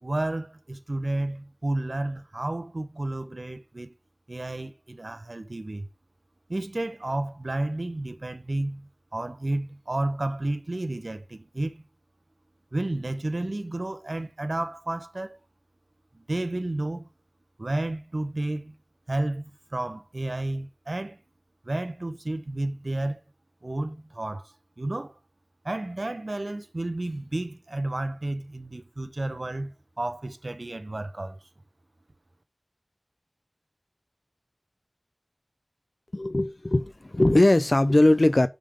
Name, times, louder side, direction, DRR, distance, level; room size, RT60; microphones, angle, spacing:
voice 1, 0.0-3.9 4.3-5.9 6.5-11.9 12.7-15.4 16.1-17.1 17.6-18.8 19.1-21.2 21.6-23.2 23.6-25.2 25.6-31.4, right 2 dB, 70° right, 0.8 m, -31 dB
voice 2, 36.1-38.5, left 1 dB, 55° left, 0.5 m, -20 dB
9.0 x 3.7 x 5.0 m
wide cardioid pair, 40°, 0 cm